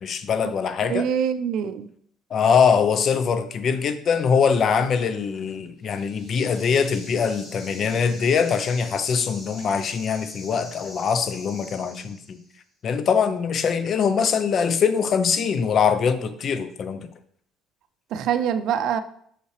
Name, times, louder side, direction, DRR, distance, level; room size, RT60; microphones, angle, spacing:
voice 1, 0.0-1.1 2.3-12.4 12.8-17.1, left 6 dB, 50° left, 0.6 m, -22 dB
voice 2, 0.8-1.9 18.1-19.0, right 8 dB, 65° right, 0.5 m, -24 dB
sound 1, 5.8-12.5, left 1 dB, 30° left, 2.4 m, -44 dB
5.8 x 5.5 x 3.2 m
supercardioid pair, 90°, 0 cm